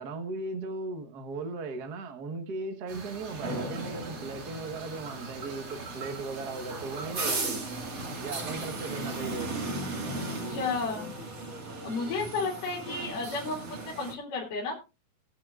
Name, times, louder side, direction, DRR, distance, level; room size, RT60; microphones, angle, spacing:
voice 1, 0.0-7.6 8.2-9.6, right 3 dB, 70° right, 0.9 m, -37 dB
sound 1, 2.9-9.2, right 4 dB, 50° right, 2.8 m, -44 dB
sound 2, 3.3-14.1, right 2 dB, 35° right, 1.7 m, -37 dB
voice 2, 10.5-11.1 11.8-14.8, left 3 dB, 80° left, 4.0 m, -32 dB
21.5 x 8.4 x 2.4 m
omnidirectional pair, 3.7 m